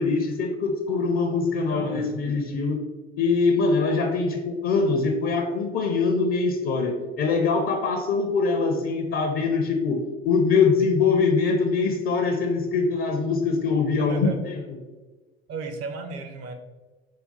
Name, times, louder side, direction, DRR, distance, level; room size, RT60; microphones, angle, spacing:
voice 1, 0.0-2.8 3.2-14.6, left 4 dB, 40° left, 4 dB, 0.6 m, -23 dB
voice 2, 1.6-2.2 14.1-14.4 15.5-16.5, right 3 dB, 45° right, 5 dB, 0.8 m, -35 dB
5.2 x 2.3 x 3.8 m, 1.3 s
hypercardioid pair, 75°, 33 cm